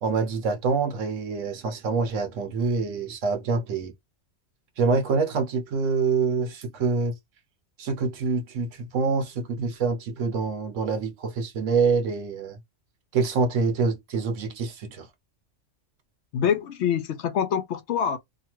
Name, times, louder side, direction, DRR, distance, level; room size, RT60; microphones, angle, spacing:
voice 1, 0.0-3.9 4.8-7.1 7.8-12.6 13.1-15.1, right 4 dB, 80° right, 1.2 m, -26 dB
voice 2, 16.3-18.2, left 8 dB, 70° left, 0.8 m, -25 dB
2.8 x 2.4 x 2.9 m
omnidirectional pair, 1.3 m